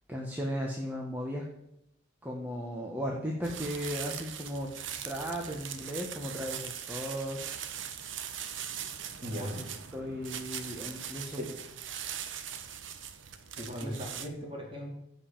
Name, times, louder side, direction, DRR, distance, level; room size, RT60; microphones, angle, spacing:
voice 1, 0.1-1.4 2.2-4.7 5.0-7.4 9.6-9.7 9.9-11.4 13.8-14.0, equal, 10° right, -1 dB, 1.5 m, -36 dB
sound 1, 3.4-14.3, right 9 dB, 90° right, 0.9 m, -41 dB
voice 2, 9.2-9.6 11.4-11.5 13.6-14.9, equal, 30° right, -1 dB, 3.7 m, -38 dB
15.5 x 5.5 x 7.5 m, 0.82 s
head